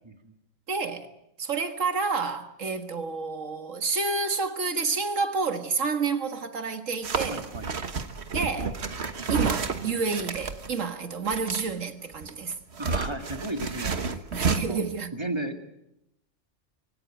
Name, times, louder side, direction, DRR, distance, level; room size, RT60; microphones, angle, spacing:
voice 1, 0.7-1.1 1.4-7.4 8.3-8.7 9.3-12.6 14.3-15.1, right 4 dB, 85° right, 2.0 m, -29 dB
sound 1, 7.0-10.8 11.3-11.7 12.1-14.6, right 4 dB, 60° right, 1.5 m, -31 dB
voice 2, 7.2-7.7 12.8-14.8 15.1-15.6, right 2 dB, 20° right, 2.1 m, -34 dB
24.0 x 17.0 x 9.1 m
omnidirectional pair, 1.3 m